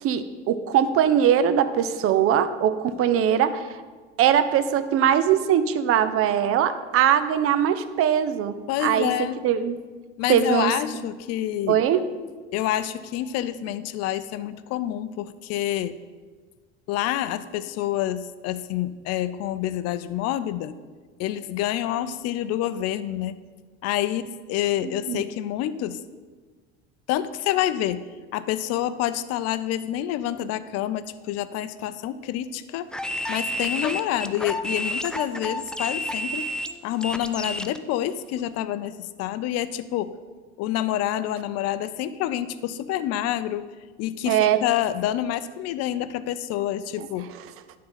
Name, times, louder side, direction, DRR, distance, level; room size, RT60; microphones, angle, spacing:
voice 1, 0.0-3.8 4.2-9.8 10.3-10.7 11.7-12.0 24.8-25.2 44.3-44.6 47.0-47.1, right 9 dB, 45° right, 12 dB, 0.7 m, -21 dB
voice 2, 8.7-9.4 10.2-11.8 12.5-16.0 16.9-20.8 21.2-23.4 23.8-26.0 27.1-28.0 28.3-32.9 33.3-36.5 36.8-40.2 40.6-43.7 44.0-47.3, left 12 dB, 50° left, 14 dB, 0.5 m, -27 dB
sound 1, 32.9-37.8, left 1 dB, ahead, 0.3 m, -30 dB
11.0 x 3.8 x 5.8 m, 1.4 s
hypercardioid pair, 80°, 33 cm